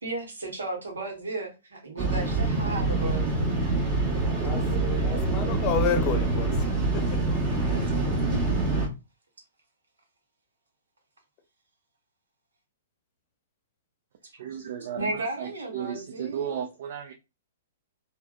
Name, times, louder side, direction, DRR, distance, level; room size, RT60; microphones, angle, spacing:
voice 1, 0.0-3.5 7.7-8.4 15.0-16.5, right 2 dB, 80° right, 0.9 m, -34 dB
sound 1, 2.0-8.9, right 3 dB, 30° right, 1.2 m, -25 dB
voice 2, 5.0-7.3, left 7 dB, 30° left, 0.7 m, -30 dB
voice 3, 14.4-17.1, right 8 dB, 55° right, 0.4 m, -35 dB
3.4 x 2.1 x 2.3 m
figure-of-eight pair, 115°, 0 cm